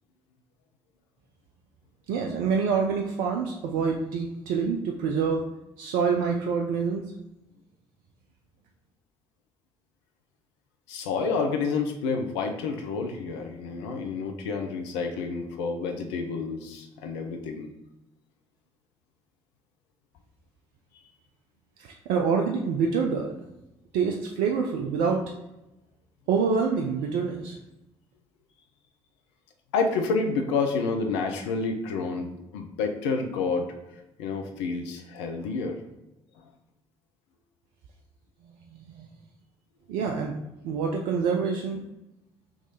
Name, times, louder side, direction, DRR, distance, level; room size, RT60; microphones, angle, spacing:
voice 1, 2.1-5.5 5.8-7.0 21.8-23.4 23.9-25.3 26.3-27.6 38.7-39.1 39.9-40.3 40.6-41.8, right 5 dB, 70° right, 1 dB, 0.4 m, -26 dB
voice 2, 10.9-17.7 29.7-33.7 34.2-35.8, left 4 dB, 80° left, 4 dB, 0.5 m, -29 dB
3.6 x 3.1 x 3.9 m, 0.93 s
hypercardioid pair, 45°, 15 cm